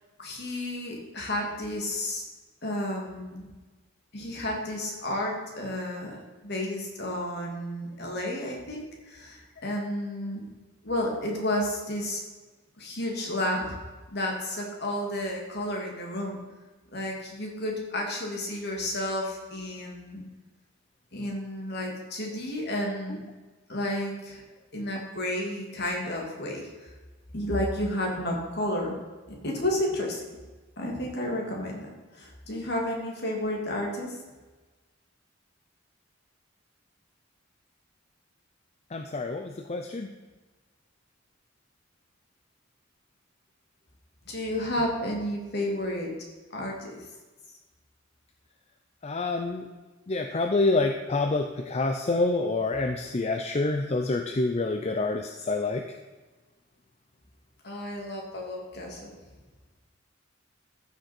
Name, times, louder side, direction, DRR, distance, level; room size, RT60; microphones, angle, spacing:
voice 1, 0.2-2.2 2.6-3.5 4.1-6.2 6.4-10.4 10.8-12.2 12.8-13.7 14.1-16.4 16.9-20.2 21.1-23.2 23.7-24.4 24.7-26.9 27.3-29.0 29.4-30.2 30.8-31.9 32.1-34.2 44.3-46.1 46.5-47.0 57.6-59.2, left 1 dB, 55° left, -1 dB, 2.6 m, -31 dB
voice 2, 38.9-40.1 44.8-44.9 49.0-49.7 50.1-55.8, left 3 dB, 35° left, 5 dB, 0.6 m, -27 dB
14.5 x 6.6 x 4.5 m, 1.2 s
head